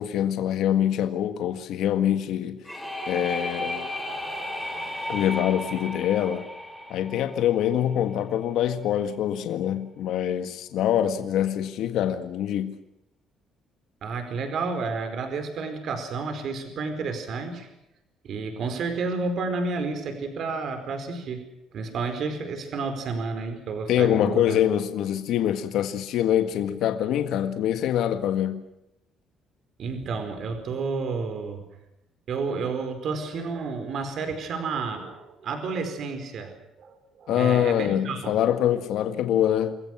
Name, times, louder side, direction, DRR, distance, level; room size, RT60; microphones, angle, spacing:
voice 1, 0.0-2.8 3.1-3.9 5.1-6.5 6.9-12.8 23.9-28.6 37.3-39.8, left 10 dB, 65° left, 1.7 m, -24 dB
sound 1, 2.7-8.3, left 1 dB, ahead, 4.2 m, -34 dB
voice 2, 14.0-17.7 18.2-21.4 21.7-24.6 29.8-31.7 32.3-38.4, right 4 dB, 45° right, 4.8 m, -31 dB
28.5 x 21.5 x 6.2 m
cardioid pair, 170°, 0 cm